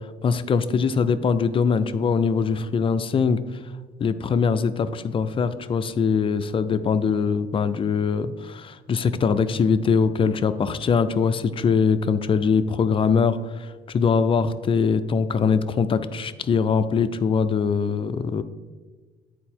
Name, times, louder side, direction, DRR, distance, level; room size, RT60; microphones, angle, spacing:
voice 1, 0.2-3.4 4.0-18.4, left 5 dB, 30° left, 12 dB, 0.4 m, -22 dB
9.1 x 4.4 x 4.3 m, 1.3 s
cardioid pair, 110°, 17 cm